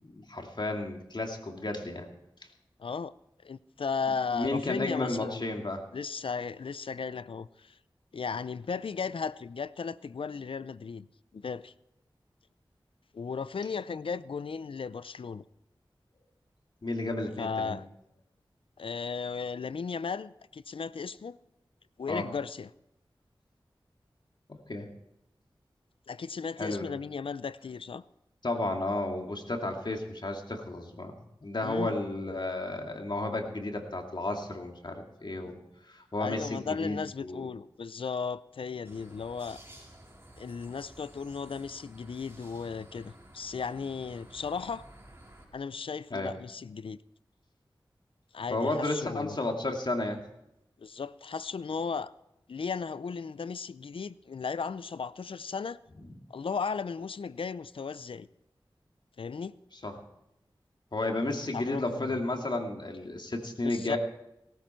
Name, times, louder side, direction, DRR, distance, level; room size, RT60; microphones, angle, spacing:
voice 1, 0.0-2.1 4.3-5.8 16.8-17.8 22.1-22.2 24.7-24.9 26.6-26.9 28.4-35.6 35.9-37.5 46.1-46.3 48.5-50.2 56.0-56.1 59.8-59.9 60.9-64.0, left 2 dB, 55° left, 2.5 m, -32 dB
voice 2, 2.8-3.1 3.4-5.5 5.9-7.7 8.1-11.1 11.3-11.7 13.1-15.4 17.4-17.8 18.8-21.4 22.0-22.7 26.1-28.0 31.6-31.9 36.2-39.6 40.4-44.8 45.5-47.0 48.3-49.4 50.8-52.1 52.5-55.8 56.3-58.3 59.2-59.5 61.5-62.1 63.6-64.0, left 5 dB, 80° left, 0.5 m, -35 dB
sound 1, 38.8-45.5, right 1 dB, 30° right, 4.5 m, -53 dB
18.5 x 13.0 x 4.5 m
cardioid pair, 40°, 9 cm